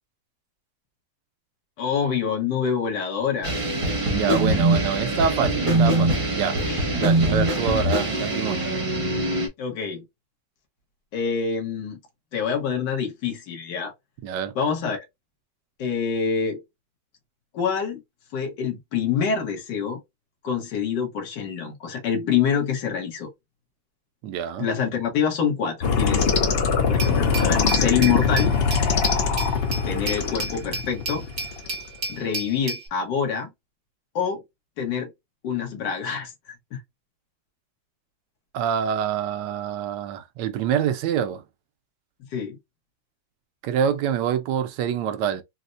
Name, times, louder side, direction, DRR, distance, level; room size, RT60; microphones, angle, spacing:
voice 1, 1.8-3.5 6.7-6.9 9.6-10.0 11.1-12.0 12.3-13.9 14.5-15.0 15.8-16.6 17.5-18.0 18.3-20.0 20.4-23.3 24.6-26.3 26.9-28.5 29.8-31.2 32.1-33.5 34.1-34.4 34.8-35.1 35.4-36.3 36.7-36.8 42.3-42.6, left 7 dB, 80° left, 1.7 m, -26 dB
sound 1, 3.4-9.5, right 1 dB, 35° right, 0.5 m, -23 dB
voice 2, 4.1-6.6 7.0-8.8 14.2-14.5 24.2-24.7 38.5-41.4 43.6-45.4, right 8 dB, 90° right, 1.2 m, -26 dB
sound 2, 25.8-31.8, left 5 dB, 65° left, 0.6 m, -23 dB
Glass, 27.0-32.9, right 3 dB, 50° right, 1.6 m, -33 dB
4.2 x 2.1 x 2.5 m
omnidirectional pair, 1.8 m